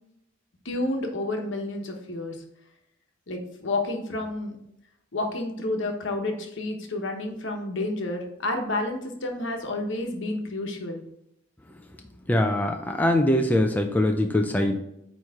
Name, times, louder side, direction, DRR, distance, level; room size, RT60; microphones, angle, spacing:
voice 1, 0.6-2.4 3.3-4.6 5.1-11.0, left 2 dB, 65° left, 3 dB, 1.1 m, -30 dB
voice 2, 12.3-14.8, left 1 dB, 10° left, 3 dB, 0.4 m, -22 dB
8.7 x 3.1 x 3.6 m, 0.79 s
head